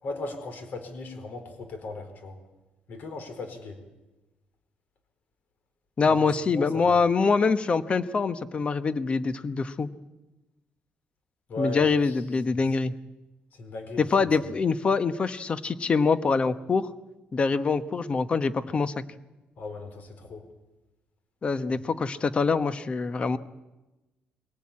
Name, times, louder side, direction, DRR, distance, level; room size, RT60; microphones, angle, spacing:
voice 1, 0.0-2.4 2.9-3.8 6.1-6.2 6.5-7.0 11.5-12.1 13.5-14.0 19.6-20.5 21.7-21.8, left 2 dB, 60° left, 7 dB, 4.5 m, -37 dB
voice 2, 6.0-9.9 11.6-12.9 14.0-16.9 17.3-18.9 21.4-23.4, left 4 dB, 35° left, 12 dB, 1.1 m, -24 dB
23.5 x 18.0 x 8.6 m, 1.1 s
cardioid pair, 115°, 3 cm